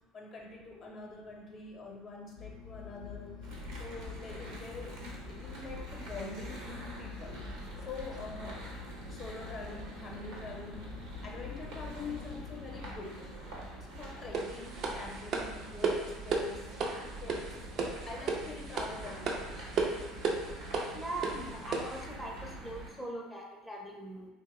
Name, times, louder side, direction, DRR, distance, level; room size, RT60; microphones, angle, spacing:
voice 1, 0.1-3.5 3.8-5.0 5.3-7.4 7.8-13.3 13.8-16.8 17.2-19.9, left 3 dB, 40° left, 0 dB, 0.7 m, -45 dB
sound 1, 2.4-12.9, left 7 dB, 75° left, 0.3 m, -47 dB
sound 2, 3.4-22.9, right 1 dB, 70° right, 0.8 m, -45 dB
sound 3, 14.3-22.0, right 4 dB, 50° right, 0.4 m, -34 dB
voice 2, 20.9-24.3, right 1 dB, ahead, -2 dB, 0.5 m, -41 dB
2.8 x 2.0 x 3.5 m, 1.0 s
hypercardioid pair, 80°, 0 cm